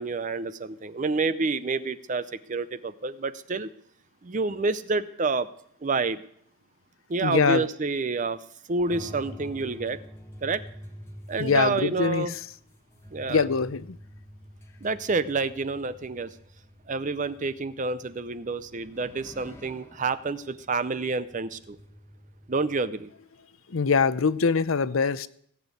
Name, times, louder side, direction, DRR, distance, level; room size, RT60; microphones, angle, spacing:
voice 1, 0.0-3.7 4.2-5.5 5.8-6.2 7.1-8.4 8.7-10.0 10.4-10.6 11.3-12.3 13.1-13.4 14.8-16.3 16.9-21.8 22.5-23.1, right 3 dB, 35° right, 0.5 m, -28 dB
voice 2, 7.2-7.7 11.4-12.5 13.3-14.0 23.7-25.3, left 5 dB, 70° left, 0.6 m, -23 dB
sound 1, 8.9-23.1, equal, 10° left, 1.3 m, -48 dB
17.5 x 7.2 x 8.2 m
head